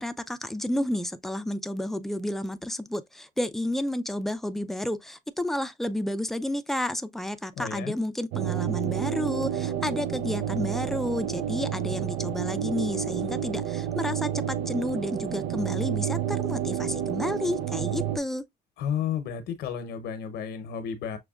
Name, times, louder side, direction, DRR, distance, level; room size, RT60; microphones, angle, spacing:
voice 1, 0.0-18.4, left 1 dB, ahead, 0.4 m, -31 dB
voice 2, 7.6-8.0 18.8-21.2, left 8 dB, 80° left, 0.8 m, -32 dB
sound 1, 8.3-18.2, right 10 dB, 80° right, 0.4 m, -30 dB
6.1 x 2.2 x 2.4 m
cardioid pair, 110°, 17 cm